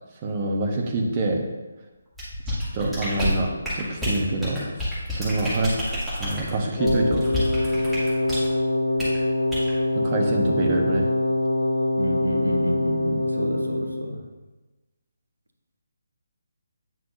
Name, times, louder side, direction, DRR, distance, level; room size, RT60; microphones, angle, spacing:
voice 1, 0.2-1.4 2.7-4.7 5.1-5.8 6.2-7.2 7.6-7.9 10.0-11.1, right 2 dB, 30° right, 0 dB, 1.0 m, -25 dB
sound 1, 2.2-8.5 9.0-9.2 9.5-9.7, left 1 dB, ahead, 2.3 m, -29 dB
Wind instrument woodwind instrument, 6.8-14.1, left 1 dB, 55° left, 0.5 m, -24 dB
voice 2, 12.0-14.2, equal, 80° right, 3 dB, 1.0 m, -29 dB
9.2 x 5.9 x 2.6 m, 1.2 s
figure-of-eight pair, 145°, 0 cm